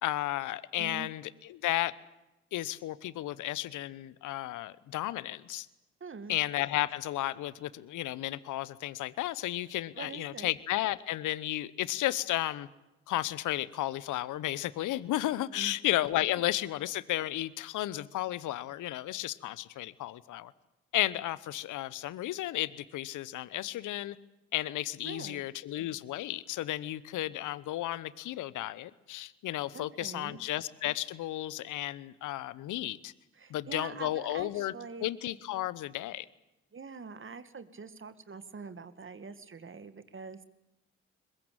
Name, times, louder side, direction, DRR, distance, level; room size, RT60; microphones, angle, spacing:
voice 1, 0.0-1.9 2.5-5.7 6.3-12.7 13.1-20.5 20.9-24.2 24.5-33.1 33.5-34.7 35.0-36.3, left 15 dB, 70° left, 19 dB, 1.0 m, -33 dB
voice 2, 0.8-1.1 6.0-6.4 9.9-10.5 15.5-15.8 25.0-25.4 29.7-30.4 33.3-35.1 36.7-40.4, right 5 dB, 40° right, 12 dB, 2.2 m, -44 dB
22.0 x 21.0 x 8.8 m, 0.95 s
hypercardioid pair, 40°, 32 cm